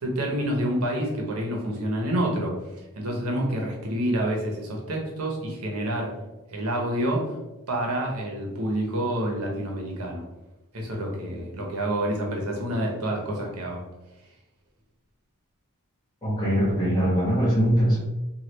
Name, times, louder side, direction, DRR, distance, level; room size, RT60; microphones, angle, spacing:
voice 1, 0.0-2.5 3.0-6.1 6.5-7.3 7.7-10.2 10.7-13.8, right 1 dB, 90° right, 0 dB, 0.8 m, -28 dB
voice 2, 16.2-18.0, equal, 20° left, -8 dB, 1.0 m, -22 dB
3.1 x 2.3 x 3.1 m, 1.0 s
head